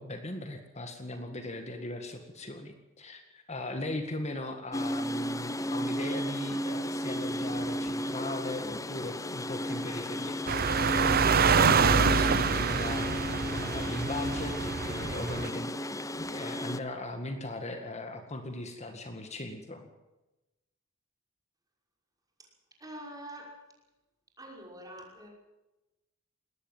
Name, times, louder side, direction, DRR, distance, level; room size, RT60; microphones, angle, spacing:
voice 1, 0.0-10.5 11.4-19.9, left 2 dB, 35° left, 6 dB, 1.9 m, -38 dB
sound 1, 4.7-16.8, left 1 dB, 15° left, 0.9 m, -34 dB
sound 2, 10.5-15.5, right 6 dB, 45° right, 0.7 m, -26 dB
voice 2, 22.8-23.6 24.4-25.3, right 1 dB, 20° right, 0 dB, 5.7 m, -45 dB
20.5 x 18.5 x 7.4 m, 1.0 s
head